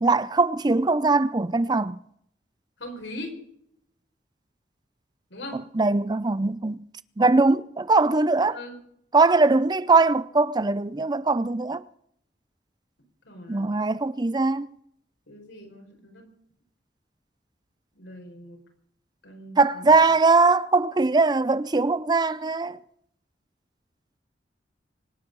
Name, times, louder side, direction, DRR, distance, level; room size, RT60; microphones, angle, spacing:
voice 1, 0.0-2.0 5.5-6.8 7.2-8.6 9.1-11.8 13.5-14.7 19.6-22.8, right 3 dB, 25° right, 0.5 m, -21 dB
voice 2, 2.8-3.4 5.3-5.7 8.5-8.8 13.3-13.7 15.3-16.3 18.0-18.6 19.2-20.0, left 1 dB, 85° left, 5.2 m, -40 dB
25.5 x 9.6 x 5.5 m
head